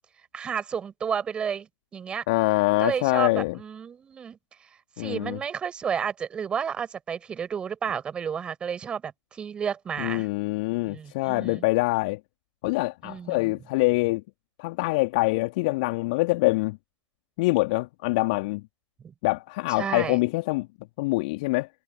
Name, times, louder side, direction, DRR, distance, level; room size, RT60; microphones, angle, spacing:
voice 1, 0.3-2.2 2.8-4.4 5.0-10.3 10.8-11.6 13.0-13.6 19.0-19.1 19.8-20.2, right 7 dB, 5° right, 7.4 m, -31 dB
voice 2, 2.3-3.6 5.0-5.4 10.0-12.2 12.6-14.2 14.6-16.8 17.4-18.6 19.2-20.7 21.0-21.7, left 24 dB, 15° left, 2.4 m, -25 dB
figure-of-eight pair, 150°, 15 cm